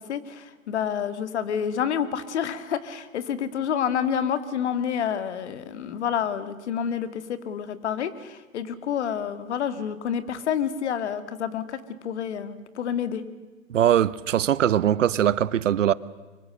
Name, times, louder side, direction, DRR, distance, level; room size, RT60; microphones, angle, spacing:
voice 1, 0.0-11.8 12.0-13.2, left 8 dB, 55° left, 2.1 m, -28 dB
voice 2, 13.7-15.9, right 10 dB, 65° right, 0.9 m, -21 dB
25.0 x 24.0 x 6.5 m
hypercardioid pair, 145°, 41 cm